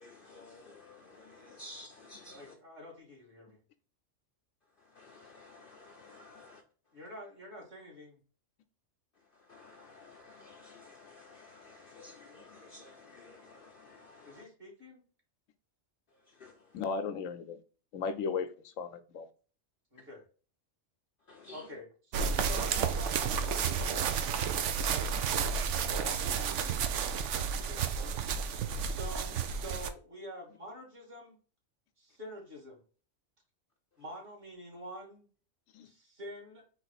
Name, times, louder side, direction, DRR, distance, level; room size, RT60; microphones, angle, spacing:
voice 1, 0.0-2.5 5.0-6.6 9.5-14.4 16.4-16.5 21.3-21.6, left 2 dB, 55° left, 0.7 m, -53 dB
voice 2, 2.3-3.6 6.9-8.2 14.2-15.0 19.9-20.2 21.5-25.5 26.0-26.8 27.5-27.9 28.8-31.4 32.0-32.8 34.0-35.3 35.8-36.6, equal, 45° right, 2.2 m, -47 dB
voice 3, 16.7-17.6 17.9-18.5 18.8-19.3 35.7-35.9, left 5 dB, 85° left, 1.0 m, -35 dB
sound 1, 22.1-29.9, right 6 dB, 70° right, 0.9 m, -31 dB
3.9 x 3.3 x 4.1 m
omnidirectional pair, 1.3 m